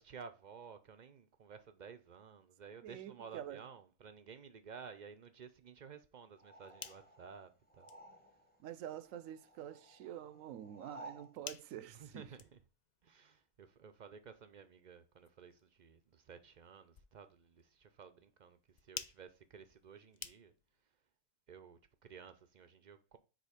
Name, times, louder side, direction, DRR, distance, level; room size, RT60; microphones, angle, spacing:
voice 1, 0.0-7.9 11.9-12.6 13.0-20.5 21.5-23.2, right 6 dB, 50° right, 0.5 m, -54 dB
voice 2, 2.8-3.6 8.6-12.3, right 10 dB, 80° right, 1.0 m, -47 dB
sound 1, 6.4-8.6 8.9-11.3, right 2 dB, 10° left, 0.9 m, -56 dB
sound 2, 6.6-20.8, left 8 dB, 80° left, 0.3 m, -55 dB
5.1 x 3.8 x 5.1 m
omnidirectional pair, 1.4 m